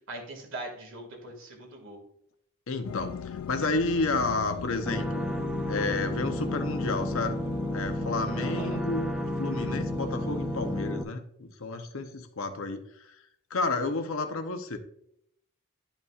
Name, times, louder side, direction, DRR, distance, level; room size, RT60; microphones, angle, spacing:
voice 1, 0.1-2.0 8.4-8.8, right 2 dB, 60° right, 1 dB, 2.0 m, -41 dB
voice 2, 2.7-5.3 5.7-7.4 7.7-9.1 9.4-13.1 13.5-14.8, left 3 dB, 65° left, 6 dB, 0.8 m, -31 dB
sound 1, 2.8-11.0, left 7 dB, 90° left, 0.3 m, -39 dB
sound 2, 4.9-11.0, equal, ahead, 0.4 m, -32 dB
11.0 x 5.4 x 2.4 m, 0.73 s
head